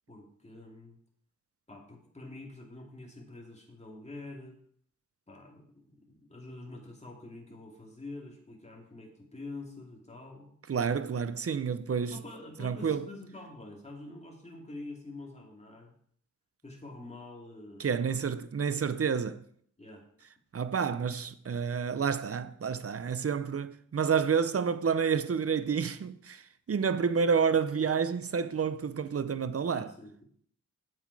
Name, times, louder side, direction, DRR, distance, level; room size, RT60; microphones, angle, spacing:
voice 1, 0.1-1.0 1.7-4.6 5.3-10.5 12.1-15.9 16.6-18.4 19.8-20.0 29.7-30.2, left 2 dB, 20° left, 2.6 m, -46 dB
voice 2, 10.7-12.2 12.6-13.0 17.8-19.4 20.5-29.9, right 6 dB, 45° right, 0.7 m, -29 dB
7.9 x 7.6 x 4.8 m
cardioid pair, 65°, 33 cm